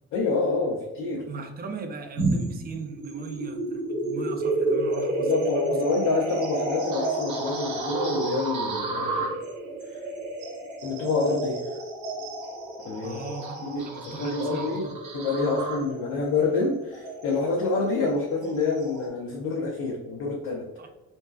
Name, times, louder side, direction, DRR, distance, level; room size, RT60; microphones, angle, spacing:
voice 1, 0.1-1.3 5.2-9.4 9.9-10.0 10.8-11.6 12.8-13.2 13.6-14.9 15.1-20.7, left 3 dB, 85° left, -1 dB, 0.5 m, -27 dB
voice 2, 1.3-5.8 13.0-15.0 20.8-20.9, right 4 dB, 30° right, 5 dB, 0.4 m, -39 dB
sound 1, 2.2-19.1, right 2 dB, 85° right, 0.7 m, -31 dB
2.6 x 2.3 x 2.2 m, 1.1 s
cardioid pair, 90°, 30 cm